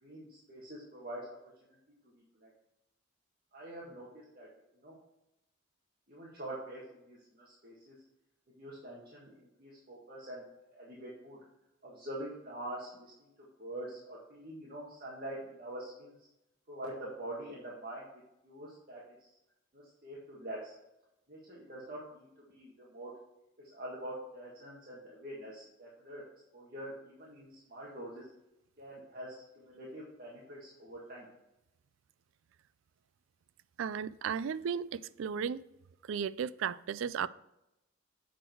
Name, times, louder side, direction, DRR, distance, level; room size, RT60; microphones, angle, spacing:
voice 1, 0.0-1.4 2.0-2.5 3.5-4.5 4.7-5.0 6.1-7.9 8.6-10.4 10.7-11.4 11.8-13.3 13.6-16.1 16.7-18.1 18.4-19.3 19.7-20.7 21.3-23.1 23.7-26.2 26.5-28.3 28.8-31.3, right 1 dB, 50° right, 1.8 m, -45 dB
voice 2, 33.8-35.6 36.1-37.3, right 7 dB, 75° right, 0.3 m, -35 dB
8.1 x 6.2 x 4.5 m
head